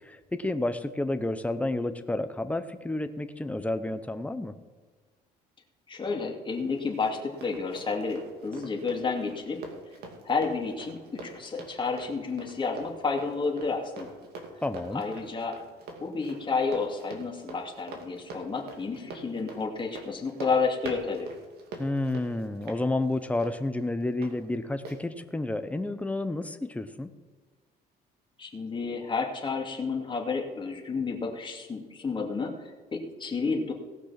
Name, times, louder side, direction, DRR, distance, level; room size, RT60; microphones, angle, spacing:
voice 1, 0.0-4.5 14.6-15.0 21.8-27.1, left 2 dB, 10° left, 10 dB, 0.9 m, -30 dB
voice 2, 5.9-9.6 10.2-14.1 14.9-15.6 16.0-21.3 28.4-33.7, left 4 dB, 30° left, 1 dB, 2.5 m, -31 dB
Run, 6.5-24.3 24.8-25.0, right 2 dB, 70° right, 2.5 m, -44 dB
18.0 x 6.1 x 5.9 m, 1.4 s
cardioid pair, 110°, 17 cm